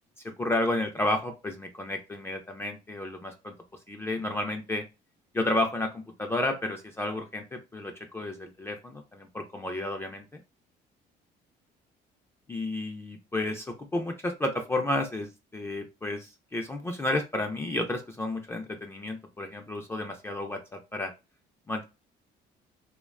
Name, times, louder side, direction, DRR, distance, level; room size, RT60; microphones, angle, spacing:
voice 1, 0.2-3.5 3.9-4.8 5.3-10.4 12.5-21.1 21.7-21.8, left 2 dB, 15° left, 3 dB, 0.3 m, -32 dB
2.5 x 2.1 x 2.3 m, 0.26 s
cardioid pair, 110°, 17 cm